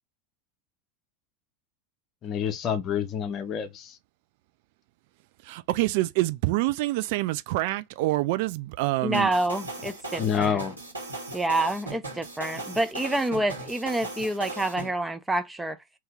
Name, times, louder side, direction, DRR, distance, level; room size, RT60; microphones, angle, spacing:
voice 1, 2.2-4.0 10.2-10.8, left 8 dB, 40° left, 0.9 m, -28 dB
voice 2, 5.4-9.3, right 18 dB, 55° right, 0.4 m, -26 dB
voice 3, 9.0-10.6 11.3-15.8, right 1 dB, 10° right, 0.7 m, -27 dB
sound 1, 9.1-14.9, right 2 dB, 85° right, 1.7 m, -37 dB
3.0 x 2.8 x 3.6 m
figure-of-eight pair, 80°, 0 cm